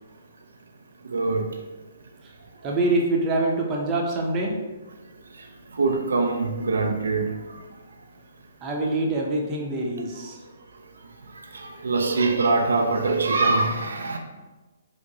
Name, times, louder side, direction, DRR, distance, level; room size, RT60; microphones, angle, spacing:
voice 1, 1.1-1.4 5.8-7.3 11.5-14.2, right 3 dB, 80° right, 3 dB, 0.4 m, -23 dB
voice 2, 2.6-4.5 8.6-10.4, right 2 dB, 25° right, -1 dB, 0.7 m, -25 dB
4.6 x 2.1 x 2.7 m, 1.2 s
hypercardioid pair, 140°, 0 cm